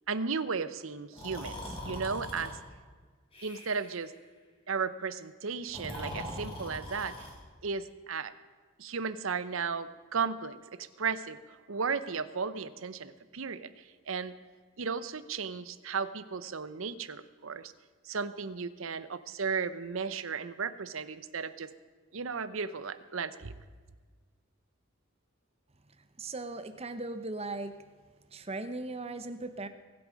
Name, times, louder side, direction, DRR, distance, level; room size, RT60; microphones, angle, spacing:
voice 1, 0.1-2.5 3.4-4.1 4.7-7.1 7.6-8.3 8.8-14.3 14.8-17.7 18.0-21.7 22.1-23.5, right 5 dB, 75° right, 14 dB, 0.8 m, -35 dB
Breathing, 1.1-2.5 3.3-4.0 5.6-7.4, equal, 30° left, 3.3 m, -41 dB
voice 2, 26.2-27.7 28.3-29.7, right 2 dB, 30° right, 10 dB, 0.9 m, -38 dB
23.0 x 8.3 x 5.2 m, 1.5 s
head